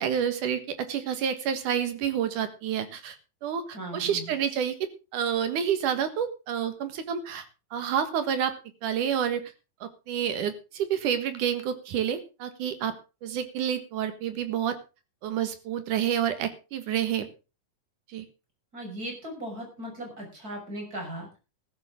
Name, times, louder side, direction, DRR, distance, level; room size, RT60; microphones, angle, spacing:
voice 1, 0.0-3.2 3.4-4.8 5.1-7.5 7.7-8.5 8.8-9.4 9.8-12.9 13.2-14.8 15.2-17.3 18.1-18.3, right 9 dB, 70° right, 10 dB, 3.0 m, -29 dB
voice 2, 3.7-4.3 18.7-21.4, right 1 dB, 25° right, 1 dB, 6.3 m, -38 dB
15.0 x 13.5 x 3.7 m, 0.32 s
omnidirectional pair, 3.8 m